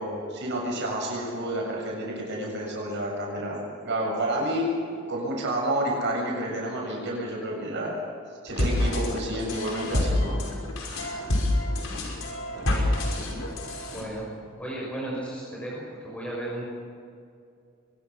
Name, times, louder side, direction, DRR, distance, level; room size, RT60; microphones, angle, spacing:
voice 1, 0.0-8.0 8.4-10.4 10.8-11.3, right 1 dB, 60° right, -2 dB, 7.4 m, -30 dB
sound 1, 8.5-14.0, left 1 dB, 85° left, 5.6 m, -27 dB
voice 2, 12.5-12.9 13.9-14.2 14.6-16.6, right 1 dB, 5° left, -5 dB, 6.2 m, -35 dB
23.5 x 21.5 x 6.3 m, 2.4 s
head